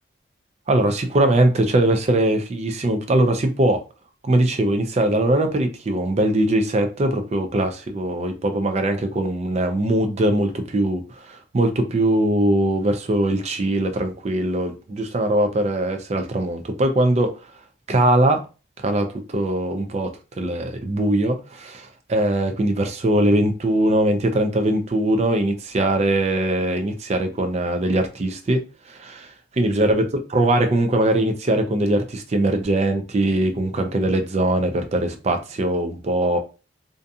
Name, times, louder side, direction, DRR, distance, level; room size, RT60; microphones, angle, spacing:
voice 1, 0.7-3.8 4.2-17.3 17.9-18.4 18.8-20.1 20.4-28.6 28.9-29.3 29.6-30.0 30.3-36.4, right 1 dB, 35° right, 0.4 m, -21 dB
2.5 x 2.3 x 2.6 m
head